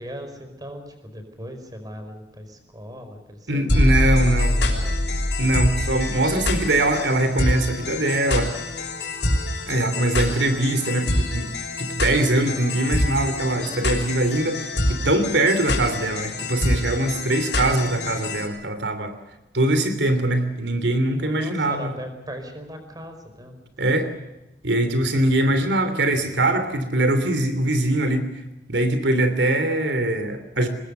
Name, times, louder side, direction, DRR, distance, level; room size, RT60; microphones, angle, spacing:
voice 1, 0.0-4.0 4.3-5.0 21.2-23.9, equal, 20° right, 7 dB, 5.0 m, -39 dB
voice 2, 3.5-4.5 5.4-8.5 9.7-11.5 11.8-19.1 19.5-21.9 23.8-24.1 24.6-28.2 28.7-30.7, right 1 dB, 85° right, 10 dB, 3.1 m, -22 dB
sound 1, 3.7-18.5, left 1 dB, 80° left, 6.0 m, -25 dB
25.0 x 21.0 x 6.9 m, 0.97 s
head